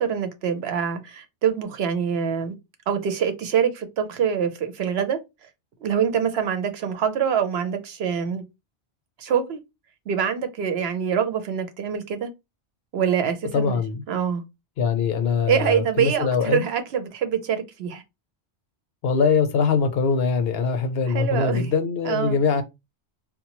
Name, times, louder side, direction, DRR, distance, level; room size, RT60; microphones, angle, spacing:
voice 1, 0.0-2.6 2.9-5.2 5.8-8.4 9.2-9.6 10.1-12.3 12.9-13.8 14.1-14.4 15.5-18.0 21.1-21.7 22.0-22.4, right 7 dB, 70° right, 0.9 m, -25 dB
voice 2, 13.5-14.0 14.8-16.6 19.0-22.6, left 5 dB, 70° left, 0.8 m, -22 dB
4.0 x 2.1 x 2.9 m
omnidirectional pair, 1.1 m